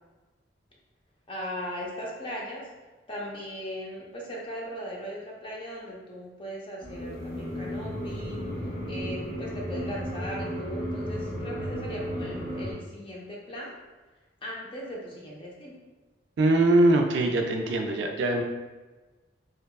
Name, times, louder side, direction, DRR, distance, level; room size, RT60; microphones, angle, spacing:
voice 1, 1.3-2.7 3.1-8.5 8.8-13.8 14.4-15.8, equal, 30° left, -3 dB, 0.4 m, -38 dB
sound 1, 6.8-12.7, equal, 90° left, 1.3 m, -34 dB
voice 2, 16.4-18.4, right 2 dB, 70° right, 3 dB, 0.3 m, -22 dB
2.7 x 2.3 x 2.3 m, 1.2 s
head